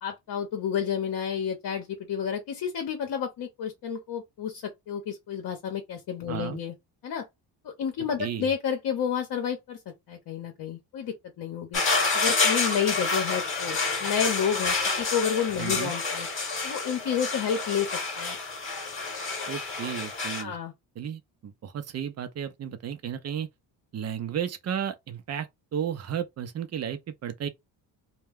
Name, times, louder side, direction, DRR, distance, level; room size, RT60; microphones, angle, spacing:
voice 1, 0.0-6.7 7.0-7.3 7.6-11.8 12.1-16.3 16.6-18.4 20.4-20.7, left 8 dB, 55° left, 0.8 m, -30 dB
voice 2, 6.3-6.6 8.2-8.5 15.6-15.9 19.5-20.6 21.0-23.5 23.9-27.5, right 9 dB, 40° right, 0.5 m, -33 dB
sound 1, 11.7-20.4, left 3 dB, 30° left, 1.0 m, -28 dB
2.2 x 2.2 x 3.4 m
cardioid pair, 90°, 42 cm